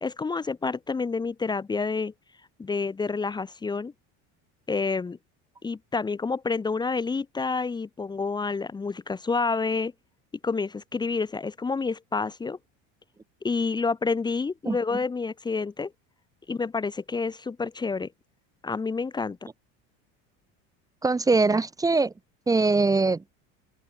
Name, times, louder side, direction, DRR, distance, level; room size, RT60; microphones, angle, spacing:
voice 1, 0.0-2.1 2.6-3.9 4.7-5.2 5.6-9.9 10.4-12.6 13.4-15.9 16.5-18.1 18.6-19.4, left 4 dB, 15° left, 2.0 m, -28 dB
voice 2, 14.7-15.0 21.0-22.1 22.5-23.2, right 3 dB, 10° right, 2.2 m, -22 dB
open air
cardioid pair, 170°, 33 cm